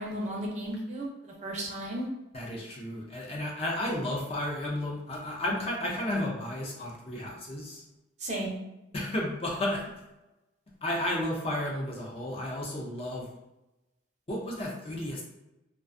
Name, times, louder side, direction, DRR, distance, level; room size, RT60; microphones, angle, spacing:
voice 1, 0.0-2.1 8.2-8.6, right 1 dB, 40° right, -2 dB, 0.5 m, -34 dB
voice 2, 2.3-7.8 8.9-9.9 10.8-13.3 14.3-15.2, left 1 dB, 30° left, -2 dB, 0.4 m, -32 dB
2.3 x 2.3 x 2.4 m, 0.96 s
head